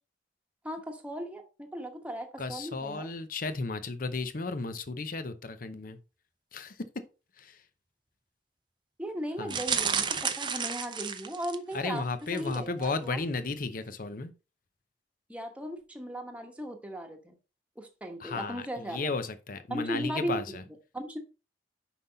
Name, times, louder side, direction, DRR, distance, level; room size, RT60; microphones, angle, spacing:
voice 1, 0.6-3.1 9.0-10.1 10.4-12.0 12.3-13.2 15.3-17.3 17.8-19.1 19.7-20.6 20.9-21.2, equal, 10° right, 1.1 m, -37 dB
voice 2, 2.4-6.0 6.5-6.8 7.4-7.6 9.4-9.6 11.7-14.3 18.2-20.6, left 3 dB, 50° left, 0.8 m, -34 dB
sound 1, 9.5-11.8 12.3-12.6 12.8-12.9, right 6 dB, 25° right, 0.6 m, -31 dB
5.9 x 5.6 x 4.0 m
head